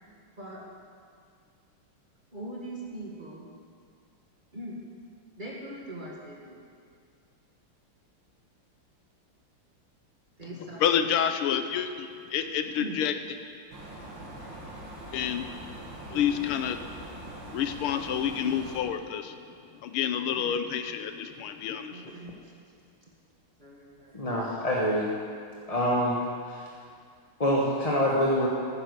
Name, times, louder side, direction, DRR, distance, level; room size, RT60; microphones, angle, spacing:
voice 1, 2.3-3.5 4.5-4.8 5.4-6.6 10.4-11.1 12.6-13.0 16.1-16.3 20.4-20.6 21.9-22.5 23.6-24.3, right 1 dB, 20° right, -4 dB, 2.0 m, -41 dB
voice 2, 10.8-13.2 15.1-15.5 16.1-16.8 17.5-19.4 19.8-22.1, left 9 dB, 80° left, 9 dB, 1.6 m, -28 dB
sound 1, 13.7-18.8, right 1 dB, 60° right, 2.8 m, -42 dB
voice 3, 24.1-25.1 25.7-26.2 26.5-26.6 27.4-28.5, equal, 25° left, -3 dB, 1.0 m, -25 dB
14.5 x 9.8 x 6.6 m, 2.2 s
omnidirectional pair, 2.4 m